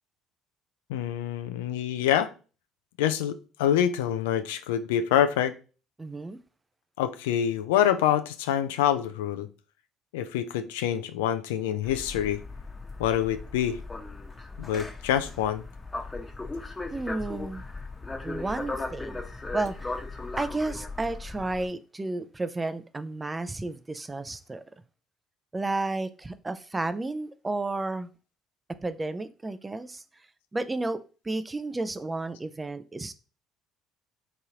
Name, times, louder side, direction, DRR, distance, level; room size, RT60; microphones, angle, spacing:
voice 1, 0.9-2.3 3.0-5.5 7.0-9.5 10.1-12.4 13.0-13.8 14.6-15.6, left 10 dB, 80° left, 0.3 m, -26 dB
voice 2, 6.0-6.4 16.9-17.6 18.2-19.2 19.5-19.9 20.4-24.6 25.5-28.1 28.8-30.0 30.5-33.1, right 2 dB, 20° right, 0.4 m, -32 dB
sound 1, 11.8-21.7, left 3 dB, 20° left, 0.8 m, -37 dB
3.5 x 2.9 x 2.8 m
hypercardioid pair, 55°, 0 cm